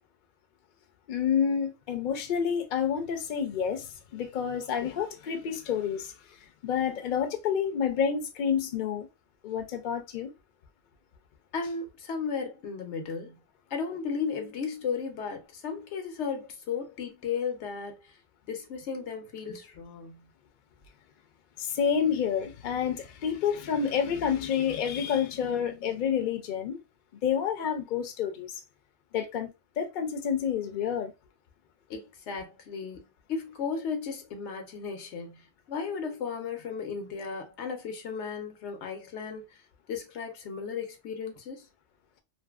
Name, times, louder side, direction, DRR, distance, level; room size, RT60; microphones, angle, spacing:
voice 1, 1.1-3.9 4.1-6.1 6.6-9.1 9.4-10.3 21.8-26.8 27.2-28.5 29.1-29.5 29.8-31.1, left 7 dB, 55° left, 0.6 m, -29 dB
voice 2, 11.5-13.4 13.7-18.0 18.5-20.2 31.9-33.0 33.3-35.4 35.7-39.4 39.9-41.6, left 5 dB, 85° left, 1.0 m, -35 dB
2.6 x 2.5 x 2.3 m
omnidirectional pair, 1.1 m